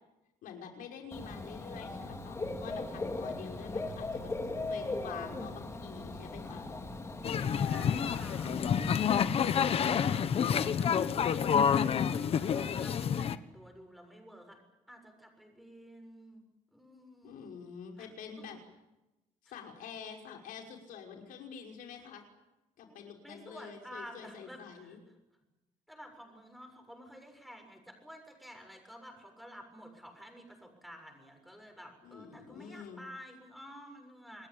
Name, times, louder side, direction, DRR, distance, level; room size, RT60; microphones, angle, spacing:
voice 1, 0.4-4.3 4.6-6.7 17.2-18.6 19.4-22.2 22.8-25.0 32.0-33.0, left 7 dB, 90° left, 3 dB, 5.8 m, -47 dB
Dog / Bird, 1.1-9.1, left 2 dB, 20° left, 3.9 m, -39 dB
sound 1, 7.2-13.4, left 7 dB, 45° left, 1.2 m, -28 dB
voice 2, 7.6-14.6 14.9-16.4 16.7-17.5 18.0-18.1 22.8-25.0 25.9-34.5, equal, ahead, 4 dB, 7.1 m, -51 dB
28.5 x 21.0 x 9.1 m, 0.99 s
cardioid pair, 155°, 14 cm